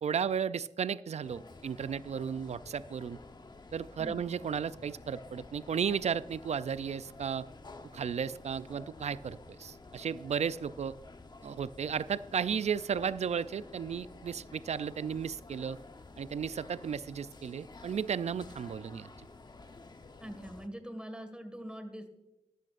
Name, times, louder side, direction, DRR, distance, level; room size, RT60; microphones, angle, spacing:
voice 1, 0.0-3.2 3.7-7.5 7.9-10.9 11.4-15.8 16.2-19.1, right 7 dB, 70° right, 16 dB, 0.4 m, -34 dB
sound 1, 1.2-20.7, left 3 dB, 40° left, 0.8 m, -51 dB
voice 2, 20.2-22.1, equal, 10° right, 8 dB, 1.7 m, -43 dB
13.5 x 12.5 x 2.5 m, 0.96 s
wide cardioid pair, 80°, 12 cm